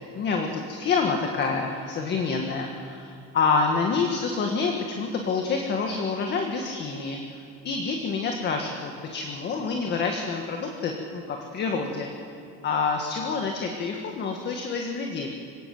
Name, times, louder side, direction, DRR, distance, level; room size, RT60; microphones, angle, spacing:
voice 1, 0.1-12.1 12.6-15.3, left 4 dB, 35° left, 3 dB, 1.8 m, -27 dB
25.5 x 18.0 x 7.9 m, 2.4 s
cardioid pair, 170°, 30 cm